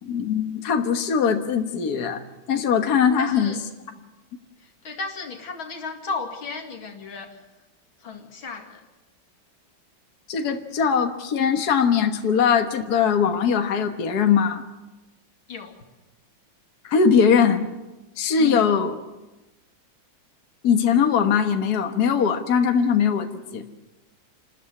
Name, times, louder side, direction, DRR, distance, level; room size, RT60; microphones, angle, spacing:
voice 1, 0.0-2.2 2.5-3.6 10.3-14.6 16.8-17.6 18.2-19.0 20.6-23.6, left 6 dB, 55° left, 5 dB, 1.8 m, -21 dB
voice 2, 3.2-3.6 4.8-7.4 8.0-8.8 15.5-15.7 18.4-18.7, left 4 dB, 90° left, 4 dB, 3.1 m, -34 dB
27.5 x 13.5 x 9.7 m, 1.1 s
omnidirectional pair, 2.1 m